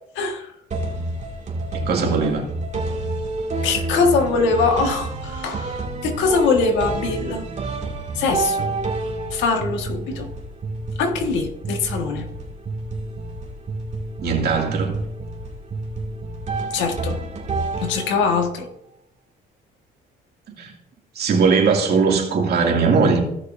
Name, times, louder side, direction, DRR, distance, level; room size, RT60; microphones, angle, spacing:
voice 1, 0.1-0.5 3.6-7.4 8.1-8.7 9.3-10.3 11.0-12.2 16.7-17.2 17.8-18.7, left 4 dB, 85° left, 1.6 m, -22 dB
sound 1, 0.7-18.5, right 2 dB, 40° right, 2.2 m, -29 dB
voice 2, 1.7-2.5 14.2-15.0 20.6-20.7 21.2-23.2, right 5 dB, 60° right, 2.4 m, -19 dB
16.0 x 6.4 x 2.6 m
cardioid pair, 100°, 19 cm